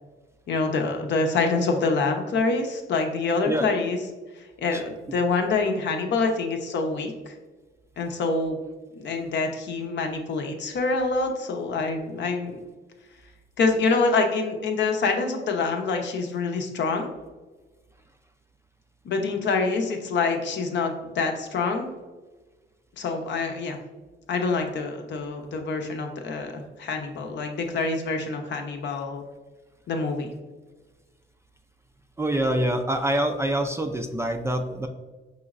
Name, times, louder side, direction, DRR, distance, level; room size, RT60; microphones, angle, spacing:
voice 1, 0.5-4.0 4.3-7.3 8.0-8.6 8.9-12.6 13.6-17.1 19.0-21.9 23.0-23.8 24.3-29.2 29.9-30.3, left 4 dB, 65° left, 4 dB, 0.7 m, -26 dB
voice 2, 32.2-34.9, right 1 dB, 15° right, 5 dB, 0.4 m, -25 dB
5.5 x 3.0 x 2.4 m, 1.3 s
cardioid pair, 90°, 20 cm